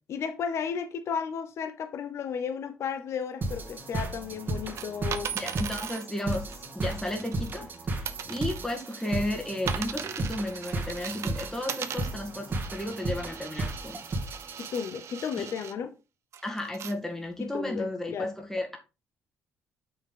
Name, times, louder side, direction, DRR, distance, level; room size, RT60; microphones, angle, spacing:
voice 1, 0.1-5.3 14.6-15.9 17.4-18.3, left 7 dB, 60° left, 0.8 m, -34 dB
sound 1, 3.4-14.8, right 2 dB, 40° right, 1.8 m, -34 dB
sound 2, 4.5-7.8 8.0-15.7 16.3-16.9 17.5-17.6, right 8 dB, 60° right, 0.7 m, -39 dB
voice 2, 5.3-6.5 6.7-7.6 8.0-14.0 15.4-15.5 16.4-18.8, left 1 dB, 10° left, 1.7 m, -33 dB
6.5 x 5.8 x 3.8 m
cardioid pair, 95°, 5 cm